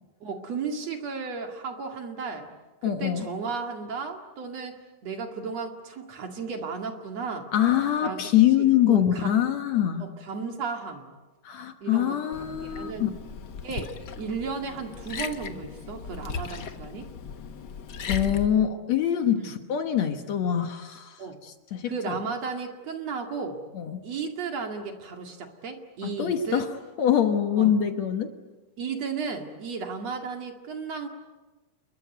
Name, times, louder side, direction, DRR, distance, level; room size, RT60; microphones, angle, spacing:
voice 1, 0.2-2.5 2.8-7.5 8.0-8.2 8.9-9.4 10.0-11.1 11.8-12.2 12.6-13.1 13.6-17.1 19.4-19.5 21.2-21.4 21.9-23.6 24.0-26.6 27.6-27.7 28.8-31.1, right 5 dB, 55° right, 4 dB, 3.1 m, -34 dB
voice 2, 2.8-3.3 7.5-10.1 11.4-13.1 18.1-22.2 23.7-24.0 26.0-26.7 27.0-28.3, left 10 dB, 60° left, 7 dB, 2.3 m, -24 dB
Liquid, 12.3-18.5, left 6 dB, 80° left, 0.9 m, -37 dB
28.5 x 22.0 x 9.4 m, 1.2 s
omnidirectional pair, 3.8 m